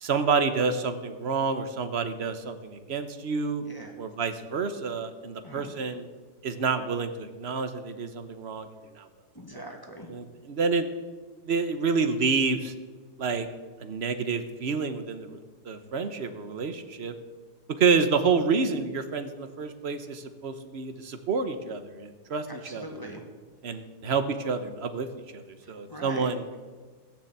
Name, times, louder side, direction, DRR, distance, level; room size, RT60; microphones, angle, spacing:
voice 1, 0.0-3.6 4.0-6.1 6.4-8.7 9.0-9.1 10.1-10.9 11.4-12.7 13.2-13.5 13.8-15.4 15.7-17.1 17.8-22.8 23.6-25.1 25.3-26.5, right 5 dB, 45° right, 9 dB, 1.1 m, -28 dB
voice 2, 3.6-3.9 5.4-5.7 9.3-10.1 22.5-23.2 25.9-26.3, equal, 15° left, 1 dB, 1.6 m, -42 dB
16.0 x 6.8 x 8.0 m, 1.4 s
omnidirectional pair, 1.7 m